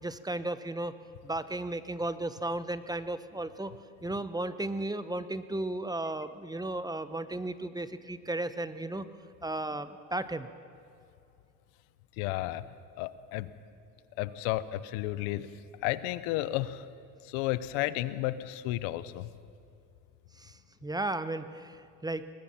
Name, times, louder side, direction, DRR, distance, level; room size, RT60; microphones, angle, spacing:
voice 1, 0.0-0.9 1.2-3.7 4.0-9.1 9.4-10.5 20.3-22.3, right 2 dB, 10° right, 12 dB, 0.9 m, -35 dB
voice 2, 12.2-12.6 13.0-13.5 14.2-15.5 15.8-16.9 17.3-19.3, left 16 dB, 80° left, 16 dB, 0.9 m, -32 dB
22.5 x 19.5 x 5.8 m, 2.5 s
supercardioid pair, 85°, 42 cm